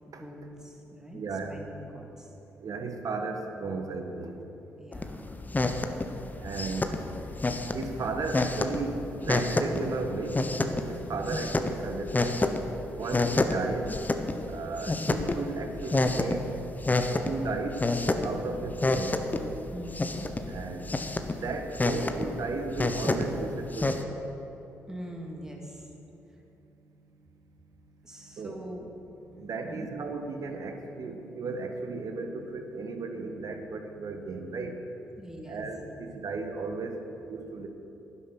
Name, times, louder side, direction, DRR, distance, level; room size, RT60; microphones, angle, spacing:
voice 1, 0.1-1.2 1.5-2.3 4.8-5.2 11.0-11.4 18.4-18.7 19.7-20.3 24.9-25.9 28.0-28.9 29.6-29.9 35.2-36.0, equal, 10° right, 0 dB, 2.6 m, -43 dB
voice 2, 1.1-1.6 2.6-4.4 6.4-7.0 7.7-10.4 10.9-12.4 12.9-13.9 14.5-16.5 17.2-17.8 18.2-19.2 20.5-20.9 21.4-24.1 28.4-28.6 29.4-34.8 35.5-37.0 37.3-37.7, right 3 dB, 50° right, 5 dB, 1.4 m, -35 dB
sound 1, 4.9-24.0, left 2 dB, 25° left, 1.1 m, -30 dB
11.5 x 10.5 x 6.1 m, 3.0 s
hypercardioid pair, 40°, 7 cm